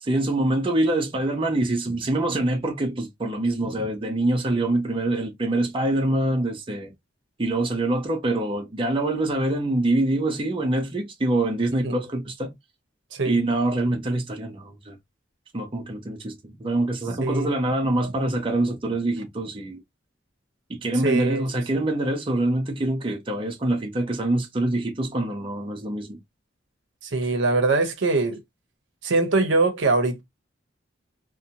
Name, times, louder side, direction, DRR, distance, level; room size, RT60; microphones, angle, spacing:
voice 1, 0.0-6.9 7.4-12.6 13.2-15.0 15.5-19.8 20.7-26.2, right 2 dB, 30° right, 0.6 m, -25 dB
voice 2, 21.0-21.4 27.0-28.4 29.0-30.2, right 3 dB, 70° right, 0.7 m, -22 dB
2.6 x 2.2 x 2.7 m
head